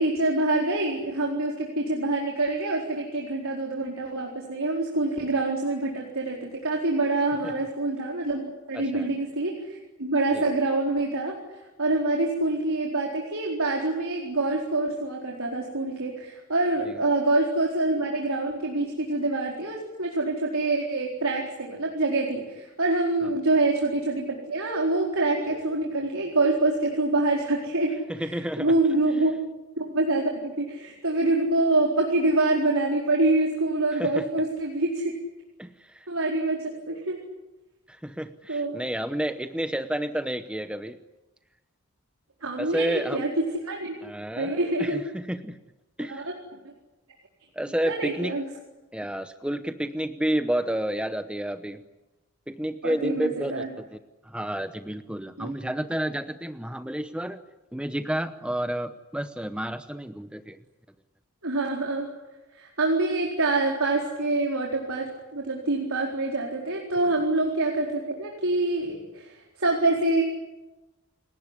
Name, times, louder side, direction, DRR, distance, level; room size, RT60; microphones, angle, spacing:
voice 1, 0.0-8.4 8.7-29.3 29.8-35.1 36.1-37.2 38.5-38.8 42.4-43.3 43.6-43.9 44.3-45.0 46.1-46.3 47.8-48.5 52.8-53.7 55.4-55.5 61.4-62.1 62.5-70.2, right 2 dB, 70° right, -1 dB, 4.4 m, -26 dB
voice 2, 8.7-9.1 10.3-10.4 16.8-17.0 28.1-28.7 34.0-34.2 35.6-36.1 37.9-41.0 42.6-43.2 44.0-45.6 46.0-46.2 47.6-48.4 48.9-51.8 52.5-54.0 54.2-57.4 57.7-60.6, right 1 dB, 5° right, 9 dB, 0.9 m, -30 dB
30.0 x 18.0 x 9.9 m, 1.1 s
head